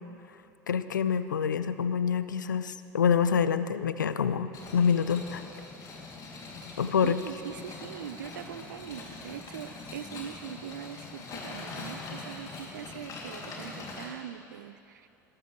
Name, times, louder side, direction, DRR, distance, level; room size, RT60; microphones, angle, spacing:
voice 1, 0.7-5.4 6.8-7.2, left 7 dB, 80° left, 13 dB, 0.5 m, -26 dB
sound 1, 4.5-14.0, left 3 dB, 35° left, 3.0 m, -43 dB
voice 2, 7.0-15.1, right 10 dB, 75° right, 14 dB, 0.5 m, -42 dB
20.5 x 13.0 x 3.4 m, 2.8 s
figure-of-eight pair, 75°, 10 cm